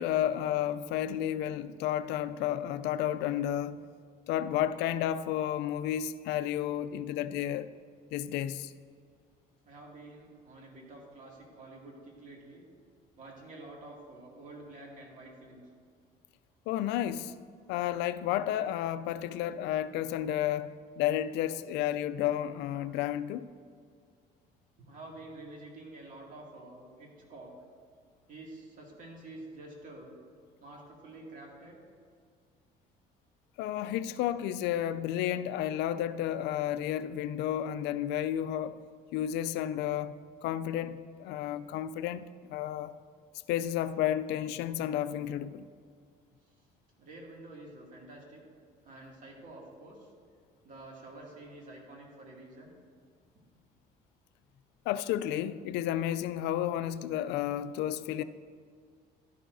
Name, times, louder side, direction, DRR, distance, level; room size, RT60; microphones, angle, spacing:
voice 1, 0.0-3.8 4.3-7.7 8.1-8.7 16.7-17.4 17.7-23.4 33.6-38.8 39.1-42.9 43.5-45.7 54.9-58.2, left 11 dB, 90° left, 0.4 m, -32 dB
voice 2, 9.6-12.7 13.2-15.6 24.8-27.6 28.3-30.2 30.6-31.8 47.0-48.4 48.8-50.1 50.6-52.7, right 2 dB, 50° right, 2.4 m, -48 dB
12.5 x 11.0 x 2.7 m
cardioid pair, 110°, 17 cm